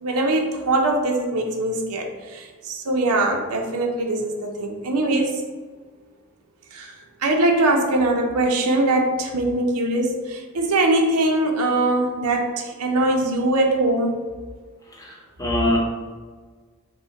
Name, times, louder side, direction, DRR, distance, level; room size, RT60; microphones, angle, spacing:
voice 1, 0.0-5.4 6.7-6.9 7.2-14.2, right 2 dB, 80° right, 2 dB, 0.7 m, -22 dB
voice 2, 14.9-15.8, left 1 dB, 15° left, -2 dB, 0.8 m, -24 dB
5.3 x 2.2 x 3.9 m, 1.5 s
head